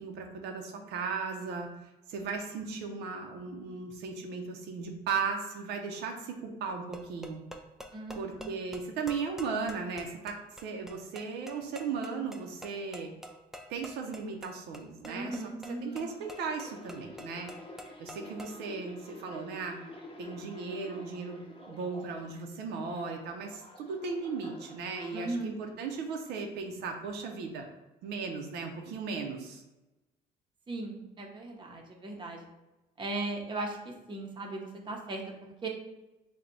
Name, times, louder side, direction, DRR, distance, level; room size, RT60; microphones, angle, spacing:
voice 1, 0.0-1.7 2.1-7.4 8.2-13.1 13.7-15.4 15.8-17.5 18.0-19.8 20.2-27.7 28.0-29.6, right 5 dB, 80° right, 3 dB, 0.6 m, -36 dB
sound 1, 6.7-18.6, equal, ahead, 0.3 m, -49 dB
voice 2, 7.9-8.6 15.1-16.1 25.1-25.6 30.7-32.4 33.0-35.2 35.6-35.7, right 2 dB, 30° right, 1 dB, 0.7 m, -37 dB
sound 2, 15.9-22.4 22.8-25.3 25.9-26.2, left 1 dB, 30° left, 0.8 m, -49 dB
3.3 x 2.2 x 3.8 m, 1.0 s
cardioid pair, 110°, 17 cm